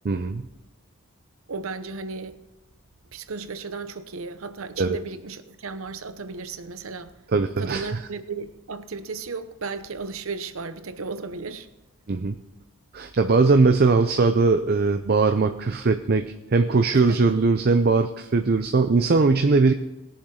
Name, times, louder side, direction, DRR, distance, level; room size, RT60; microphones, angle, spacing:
voice 1, 0.0-0.5 4.8-5.0 7.3-7.9 12.1-12.3 12.9-19.7, right 3 dB, 45° right, 0.5 m, -20 dB
voice 2, 1.5-2.4 3.1-7.2 7.6-11.7 16.9-17.4, right 4 dB, 70° right, 0.8 m, -35 dB
20.5 x 7.3 x 3.8 m
head